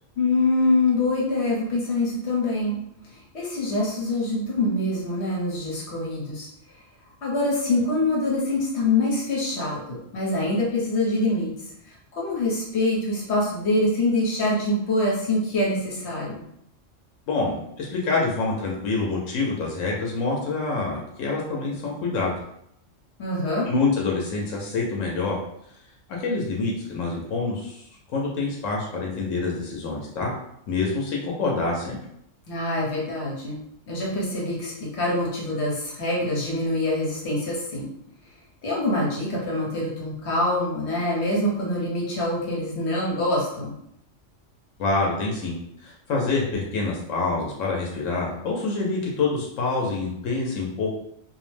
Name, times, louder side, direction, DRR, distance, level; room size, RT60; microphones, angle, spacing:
voice 1, 0.2-2.8 3.1-6.5 7.2-11.5 11.9-16.4 23.2-23.7 32.5-33.6 33.9-37.9 38.6-43.7, left 2 dB, 60° left, -4 dB, 1.1 m, -25 dB
voice 2, 17.3-22.3 23.7-25.4 26.2-27.9 28.1-30.3 30.7-32.0 44.8-45.5 45.8-50.9, left 3 dB, 90° left, -2 dB, 1.0 m, -26 dB
2.5 x 2.0 x 3.1 m, 0.75 s
omnidirectional pair, 1.3 m